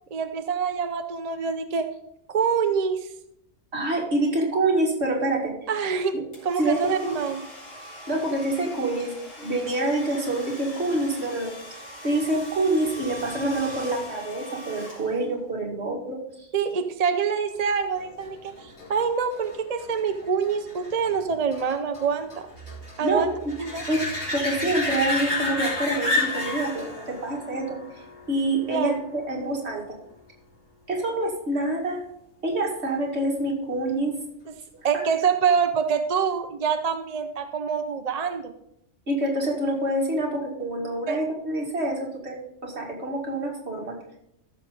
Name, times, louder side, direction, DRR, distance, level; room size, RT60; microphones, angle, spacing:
voice 1, 0.1-1.9 2.3-3.1 5.7-6.2 6.4-7.5 16.5-22.3 23.0-23.3 23.6-23.8 28.7-29.0 34.5-34.6 34.8-38.5 41.1-41.2, right 6 dB, 40° right, 7 dB, 0.6 m, -25 dB
voice 2, 3.7-5.5 6.1-6.3 6.6-7.2 8.1-11.5 12.0-16.5 23.0-23.6 23.9-27.8 28.3-29.8 30.9-32.0 32.4-34.2 34.9-35.0 39.1-44.0, right 2 dB, 60° right, -1 dB, 2.5 m, -26 dB
Domestic sounds home sounds, 6.3-15.5, equal, 85° left, 3.9 m, -41 dB
sound 1, 17.9-29.2 34.8-34.9, left 1 dB, 20° left, 3.7 m, -32 dB
14.0 x 6.4 x 3.8 m, 0.76 s
omnidirectional pair, 1.3 m